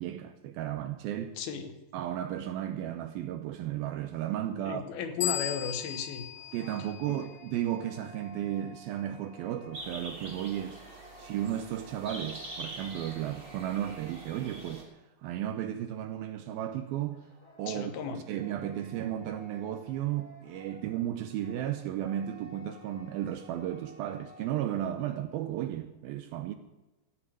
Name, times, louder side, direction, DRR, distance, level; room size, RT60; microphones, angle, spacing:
voice 1, 0.0-1.4 1.9-5.0 6.5-10.8 11.2-14.9 15.2-17.2 17.6-26.6, right 11 dB, 80° right, 2.3 m, -34 dB
voice 2, 1.4-1.7 4.7-6.3 7.1-7.3 17.7-18.2, left 6 dB, 70° left, 2.8 m, -35 dB
sound 1, 5.2-7.7, left 13 dB, 85° left, 1.8 m, -37 dB
sound 2, 6.0-14.8 17.1-24.8, equal, 45° left, 7.4 m, -55 dB
sound 3, 9.7-14.8, right 2 dB, 25° right, 3.1 m, -44 dB
15.0 x 6.9 x 8.7 m
omnidirectional pair, 4.8 m